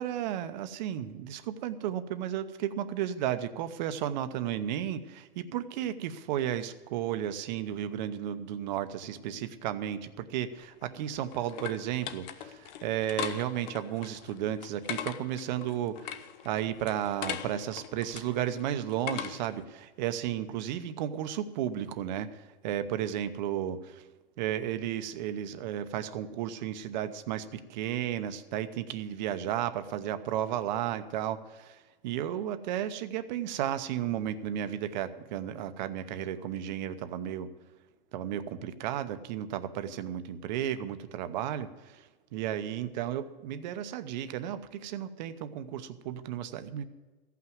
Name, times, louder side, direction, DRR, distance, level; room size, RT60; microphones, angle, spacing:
voice 1, 0.0-24.1 24.4-37.5 38.1-46.8, right 11 dB, 45° right, 11 dB, 0.8 m, -33 dB
sound 1, 10.6-19.6, left 9 dB, 45° left, 0.7 m, -40 dB
15.0 x 5.9 x 9.3 m, 1.2 s
supercardioid pair, 160°, 32 cm